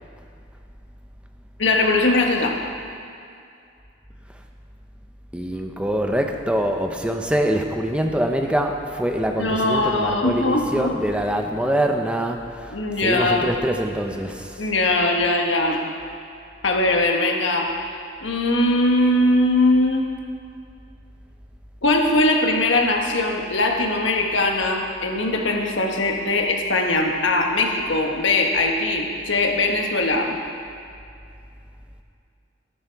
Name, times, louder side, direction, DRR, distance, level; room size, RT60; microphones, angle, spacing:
voice 1, 1.6-2.6 9.4-11.0 11.6-11.7 12.7-13.6 14.6-15.9 16.6-17.7 18.2-20.0 21.8-30.4, left 2 dB, 90° left, 1 dB, 1.5 m, -21 dB
voice 2, 5.3-12.4 13.0-14.5, right 1 dB, 5° right, 3 dB, 0.7 m, -24 dB
13.0 x 12.5 x 4.7 m, 2.4 s
head